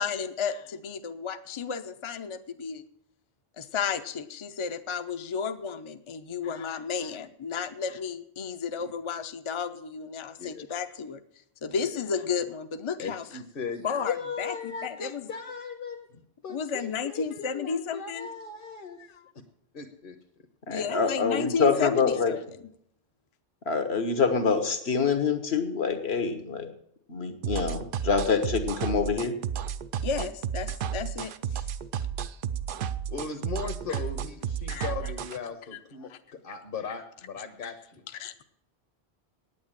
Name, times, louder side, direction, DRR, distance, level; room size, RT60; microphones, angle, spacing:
voice 1, 0.0-2.8 3.6-11.2 11.6-13.2 13.8-15.3 16.5-18.3 20.7-22.4 30.0-31.6 34.7-34.9 36.1-36.2 37.6-37.7 38.2-38.4, left 6 dB, 35° left, 9 dB, 0.6 m, -33 dB
voice 2, 13.0-19.0 19.7-20.2 33.1-38.0, left 5 dB, 55° left, 5 dB, 1.3 m, -38 dB
voice 3, 20.7-22.3 23.7-26.7 27.1-29.3, left 5 dB, 75° left, 8 dB, 1.6 m, -26 dB
sound 1, 27.4-35.4, right 8 dB, 60° right, 0.7 m, -32 dB
9.3 x 8.6 x 8.9 m, 0.71 s
omnidirectional pair, 1.1 m